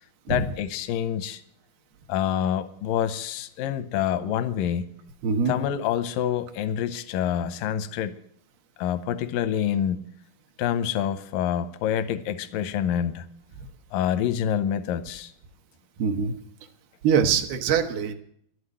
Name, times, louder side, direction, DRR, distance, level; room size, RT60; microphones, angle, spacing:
voice 1, 0.3-1.4 2.1-4.9 5.5-8.1 8.8-10.0 10.6-13.3 13.9-15.3, left 9 dB, 80° left, 11 dB, 2.0 m, -27 dB
voice 2, 16.0-16.3 17.0-18.1, right 6 dB, 75° right, 5 dB, 2.8 m, -23 dB
11.5 x 7.9 x 9.8 m, 0.69 s
omnidirectional pair, 4.6 m